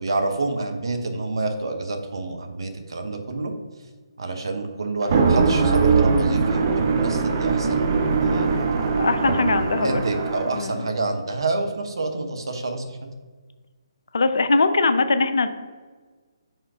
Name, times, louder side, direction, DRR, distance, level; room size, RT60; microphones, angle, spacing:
voice 1, 0.0-3.5 4.2-7.9 8.2-8.9 9.8-13.0, right 2 dB, 60° right, 5 dB, 0.9 m, -28 dB
sound 1, 5.0-10.6, right 4 dB, 35° right, 0.6 m, -21 dB
voice 2, 8.9-10.0 10.5-10.9 14.1-15.5, left 3 dB, 60° left, 10 dB, 0.5 m, -21 dB
5.3 x 3.7 x 4.9 m, 1.4 s
figure-of-eight pair, 140°, 3 cm